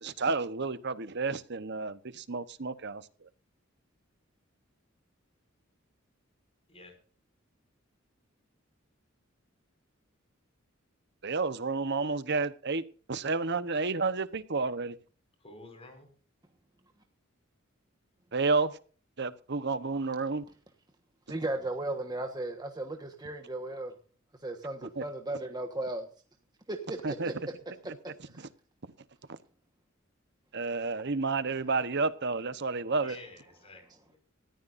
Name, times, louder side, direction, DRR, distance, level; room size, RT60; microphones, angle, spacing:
voice 1, 0.0-3.3 11.2-12.8 13.1-15.0 18.3-18.8 19.2-20.4 25.0-25.1 27.0-27.3 30.5-33.2, right 4 dB, 55° right, 1.0 m, -31 dB
voice 2, 15.4-16.1 33.0-34.2, left 2 dB, 30° left, 5.3 m, -50 dB
voice 3, 21.3-23.9 24.4-26.1 26.7-27.3 27.8-27.9 28.3-28.5, right 2 dB, 20° right, 1.4 m, -36 dB
20.0 x 14.0 x 2.6 m
head